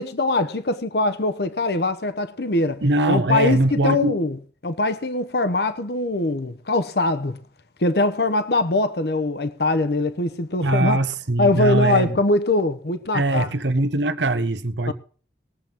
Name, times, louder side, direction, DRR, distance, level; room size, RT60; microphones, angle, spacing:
voice 1, 0.0-2.8 3.1-4.4 4.6-7.4 7.8-11.0 11.4-13.5 14.9-15.0, left 2 dB, 65° left, 0.9 m, -22 dB
voice 2, 2.8-4.2 10.6-12.2 13.1-14.9, right 2 dB, 85° right, 1.1 m, -21 dB
21.0 x 7.7 x 3.7 m
head